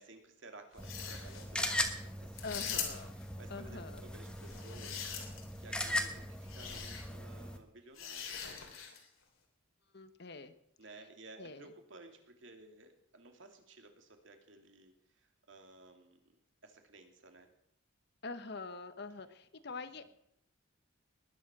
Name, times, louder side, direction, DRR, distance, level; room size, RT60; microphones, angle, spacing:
voice 1, 0.0-2.4 3.1-8.6 10.8-16.3 16.6-17.5 19.9-20.1, right 2 dB, 65° right, 4 dB, 2.5 m, -56 dB
sound 1, 0.7-1.5 2.4-3.2 4.4-5.6 6.5-7.0 8.0-9.1, left 7 dB, 85° left, 3.4 m, -42 dB
sound 2, 0.8-7.6, left 1 dB, 5° left, 1.3 m, -39 dB
voice 2, 2.4-3.1 3.5-4.0 9.9-10.5 11.4-11.7 18.2-20.1, left 3 dB, 55° left, 11 dB, 1.2 m, -44 dB
20.0 x 10.5 x 6.1 m, 0.72 s
head